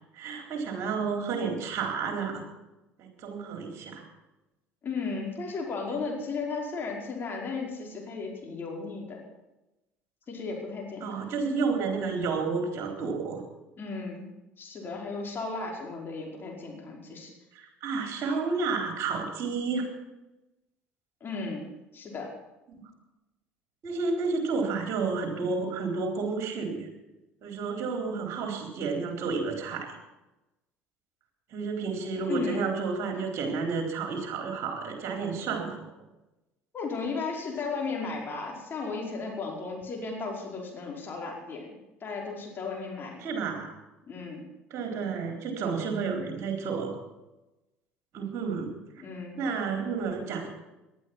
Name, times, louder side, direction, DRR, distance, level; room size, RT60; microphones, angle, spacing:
voice 1, 0.1-2.4 3.0-4.1 11.0-13.4 17.5-19.9 22.8-22.9 23.8-26.9 27.4-29.9 31.5-35.9 43.2-43.7 44.7-46.9 48.1-48.8 49.4-50.5, right 4 dB, 45° right, 3 dB, 4.1 m, -31 dB
voice 2, 4.8-9.2 10.3-11.1 13.8-14.3 14.6-17.3 21.2-21.6 21.9-22.3 32.3-32.6 36.7-41.7 42.0-43.2 44.1-44.4 49.0-49.4, left 4 dB, 35° left, -1 dB, 5.0 m, -35 dB
18.5 x 11.5 x 6.0 m, 0.99 s
figure-of-eight pair, 60°, 7 cm